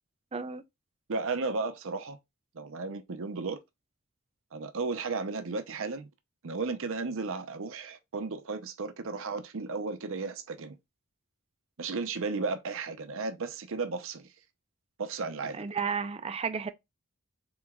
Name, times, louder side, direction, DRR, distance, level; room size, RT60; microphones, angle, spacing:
voice 1, 0.3-0.6 15.5-16.7, right 6 dB, 25° right, 0.4 m, -32 dB
voice 2, 1.1-2.2 2.5-3.6 4.5-6.1 6.4-10.8 11.8-14.3 15.0-15.6, right 4 dB, 65° right, 0.7 m, -34 dB
3.9 x 3.3 x 2.3 m
head